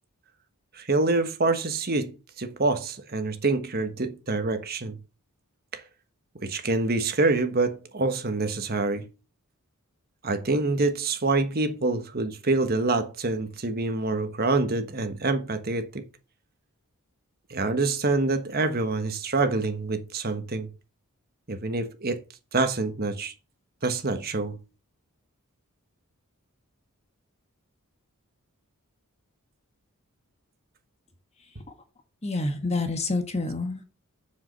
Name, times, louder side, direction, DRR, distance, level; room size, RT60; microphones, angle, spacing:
voice 1, 0.7-2.1 2.4-5.0 5.7-5.8 6.4-9.0 10.2-16.0 17.5-20.7 21.5-22.2 22.5-23.3 23.8-24.6, right 3 dB, 45° right, 1.3 m, -26 dB
voice 2, 32.2-33.8, left 2 dB, 30° left, 1.4 m, -28 dB
7.5 x 7.2 x 6.7 m
head